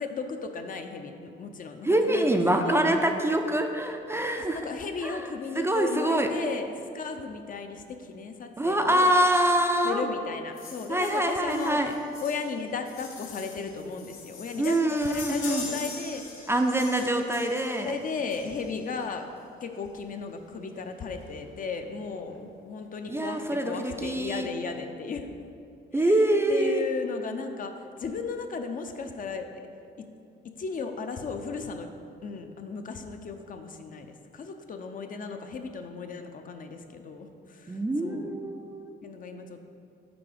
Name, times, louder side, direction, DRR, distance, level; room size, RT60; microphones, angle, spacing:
voice 1, 0.0-2.8 4.4-9.1 9.8-11.8 12.2-16.2 17.8-19.2 19.6-25.3 25.9-26.1 26.5-29.5 30.6-31.9 32.2-38.3 39.0-39.6, left 5 dB, 45° left, 6 dB, 0.5 m, -35 dB
voice 2, 1.8-4.7 5.0-5.3 5.6-6.3 8.6-10.1 10.9-12.0 14.6-15.7 16.5-17.9 23.1-24.5 25.9-26.8 37.7-38.9, right 1 dB, 10° right, 4 dB, 0.4 m, -25 dB
sound 1, 10.6-18.9 20.0-20.1 20.4-20.5 20.7-20.9 21.2-21.8 22.3-22.4, left 4 dB, 85° left, 0.9 m, -43 dB
6.0 x 3.8 x 4.9 m, 2.5 s
cardioid pair, 90°, 20 cm